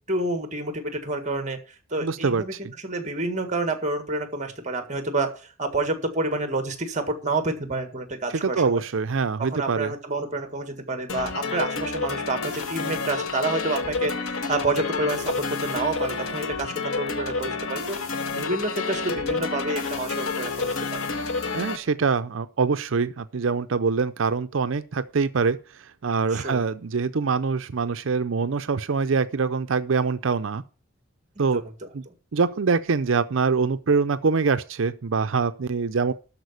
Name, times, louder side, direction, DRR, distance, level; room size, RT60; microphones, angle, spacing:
voice 1, 0.1-1.6 1.9-2.5 2.8-8.8 9.4-18.0 18.3-21.1 26.3-26.6 31.5-31.7 32.1-32.2, right 2 dB, 35° right, 1.7 m, -28 dB
voice 2, 2.0-2.7 8.4-9.9 21.5-30.6 31.4-31.6 31.9-32.0 32.3-36.1, right 4 dB, 60° right, 0.5 m, -24 dB
sound 1, 11.1-21.8, left 4 dB, 80° left, 1.5 m, -29 dB
13.0 x 4.9 x 8.1 m
head